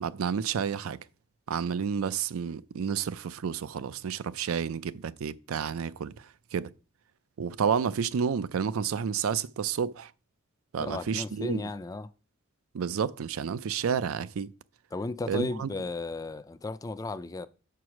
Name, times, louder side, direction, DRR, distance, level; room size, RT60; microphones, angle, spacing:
voice 1, 0.0-1.0 1.5-6.1 6.5-6.7 7.4-10.1 10.7-11.6 12.7-14.5 15.3-15.7, right 7 dB, 80° right, 0.4 m, -30 dB
voice 2, 10.8-12.1 14.9-17.5, left 3 dB, 15° left, 0.3 m, -35 dB
7.0 x 4.7 x 6.0 m
head